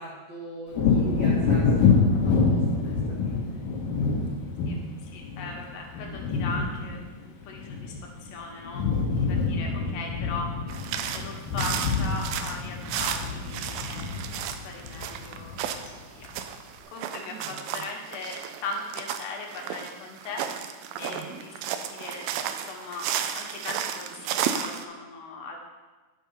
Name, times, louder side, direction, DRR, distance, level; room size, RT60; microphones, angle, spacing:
voice 1, 0.0-3.4 17.2-17.8 21.0-21.4, right 3 dB, 55° right, -7 dB, 2.0 m, -41 dB
Wind / Thunder, 0.7-8.3 8.6-15.8 16.2-16.4, left 4 dB, 65° left, 2.8 m, -26 dB
voice 2, 5.0-8.0 8.2-8.8 9.2-10.5 11.1-15.9 16.2-16.3 16.9-25.6, left 3 dB, 80° left, 1 dB, 3.2 m, -39 dB
sound 1, 10.7-24.8, right 9 dB, 90° right, 2.1 m, -33 dB
9.9 x 5.4 x 5.3 m, 1.2 s
omnidirectional pair, 4.9 m